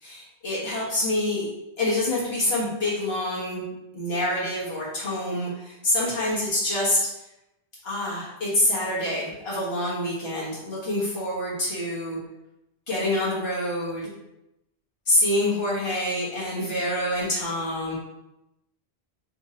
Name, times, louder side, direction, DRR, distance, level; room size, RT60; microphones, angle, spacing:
voice 1, 0.0-1.5 1.8-3.6 3.9-7.0 7.8-12.2 12.9-14.1 15.1-18.0, left 1 dB, 70° left, -7 dB, 1.7 m, -26 dB
3.5 x 3.2 x 3.7 m, 0.91 s
omnidirectional pair, 1.1 m